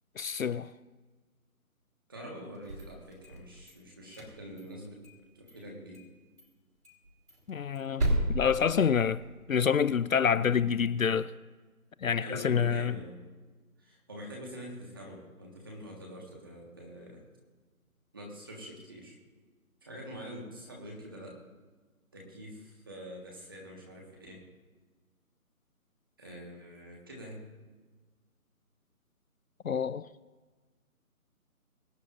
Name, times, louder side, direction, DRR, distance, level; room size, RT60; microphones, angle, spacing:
voice 1, 0.2-0.7 7.5-9.2 9.5-11.3 12.0-13.0 29.6-30.1, left 7 dB, 65° left, 0.5 m, -27 dB
voice 2, 2.1-5.0 5.3-6.0 12.2-13.2 13.8-17.2 18.1-19.2 19.8-21.4 22.1-24.4 26.2-27.4, equal, 15° right, 1.6 m, -45 dB
sound 1, 2.5-3.7 4.1-5.2 5.5-5.6 5.9-6.1 6.4-6.5 6.8-9.4, right 1 dB, 80° right, 4.3 m, -34 dB
24.0 x 9.1 x 2.6 m
hypercardioid pair, 175°, 44 cm